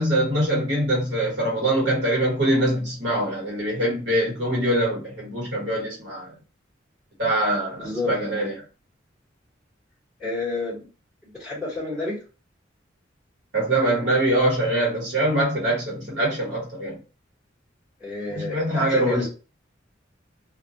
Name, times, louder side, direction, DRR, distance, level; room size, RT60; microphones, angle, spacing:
voice 1, 0.0-6.3 7.2-8.6 13.5-17.0 18.3-19.2, right 1 dB, 65° right, 1.1 m, -23 dB
voice 2, 7.8-8.1 10.2-10.8 11.2-12.2 18.0-19.3, left 3 dB, 5° right, 0.9 m, -29 dB
2.2 x 2.1 x 2.6 m
head